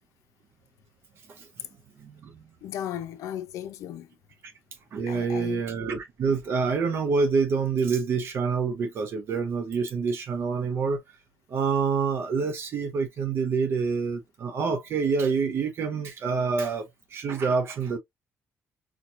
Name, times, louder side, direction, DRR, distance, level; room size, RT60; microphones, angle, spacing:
voice 1, 2.0-2.4 4.4-4.5 4.9-11.0 11.5-16.8 17.1-18.0, right 5 dB, 50° right, 0.6 m, -27 dB
voice 2, 2.6-4.1 5.1-5.7, left 10 dB, 75° left, 0.5 m, -35 dB
4.3 x 2.2 x 2.5 m
cardioid pair, 140°, 5 cm